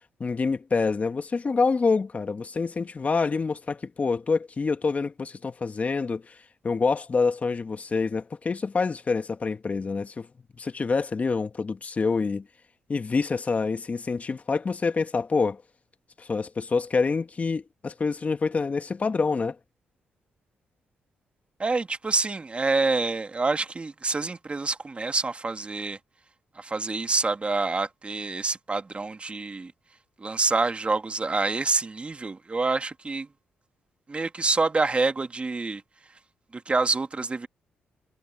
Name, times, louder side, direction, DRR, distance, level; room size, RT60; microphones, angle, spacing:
voice 1, 0.2-6.3 6.6-10.3 10.6-12.5 12.9-15.6 16.2-19.6, left 4 dB, 40° left, 1.8 m, -26 dB
voice 2, 21.6-26.0 26.6-29.7 30.2-33.3 34.1-35.8 36.5-37.5, right 3 dB, 30° right, 2.4 m, -27 dB
supercardioid pair, 55°, 4 cm